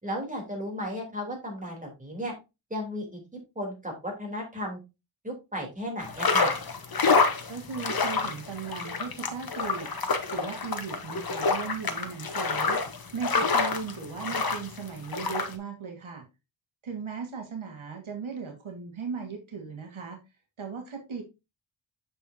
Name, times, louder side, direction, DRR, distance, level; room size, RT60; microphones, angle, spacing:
voice 1, 0.0-2.3 2.7-3.2 3.5-4.8 5.2-6.5, equal, 15° right, 0 dB, 3.2 m, -34 dB
sound 1, 6.0-15.5, left 4 dB, 45° left, 1.2 m, -27 dB
voice 2, 7.5-9.9 10.3-12.8 13.1-16.3 16.8-20.2 20.6-21.2, right 5 dB, 75° right, 3 dB, 1.7 m, -37 dB
7.6 x 6.5 x 2.7 m, 0.25 s
wide cardioid pair, 120°, 48 cm